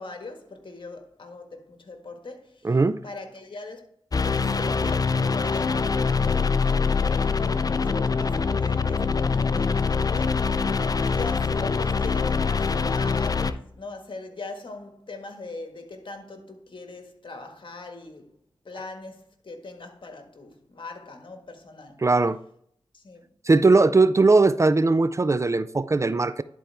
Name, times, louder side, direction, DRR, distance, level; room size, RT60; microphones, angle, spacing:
voice 1, 0.0-2.8 3.0-3.9 4.2-18.3 18.6-22.0 22.9-23.3, left 3 dB, 60° left, 1.6 m, -41 dB
voice 2, 2.6-3.0 22.0-22.4 23.5-26.4, right 3 dB, 30° right, 0.4 m, -19 dB
sound 1, 4.1-13.5, left 5 dB, 40° left, 0.5 m, -24 dB
11.0 x 4.4 x 3.4 m
cardioid pair, 45°, 9 cm